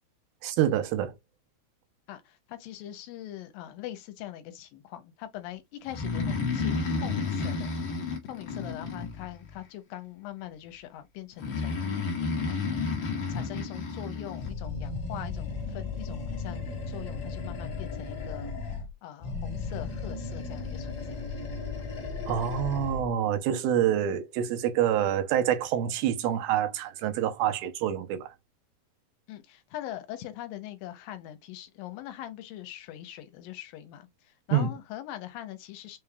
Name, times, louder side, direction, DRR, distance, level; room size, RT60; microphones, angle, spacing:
voice 1, 0.4-1.1 22.3-28.3 34.5-34.7, right 10 dB, 85° right, 2.6 m, -27 dB
voice 2, 2.5-7.7 8.2-11.9 12.4-12.8 13.3-18.5 19.0-21.2 29.3-34.1 34.5-36.0, left 13 dB, 85° left, 2.4 m, -42 dB
Breathing, 5.9-9.6 11.4-14.5, left 4 dB, 55° left, 1.3 m, -31 dB
Animal, 14.4-18.9 19.2-23.1, left 4 dB, 40° left, 1.4 m, -35 dB
6.0 x 2.3 x 3.3 m
omnidirectional pair, 4.2 m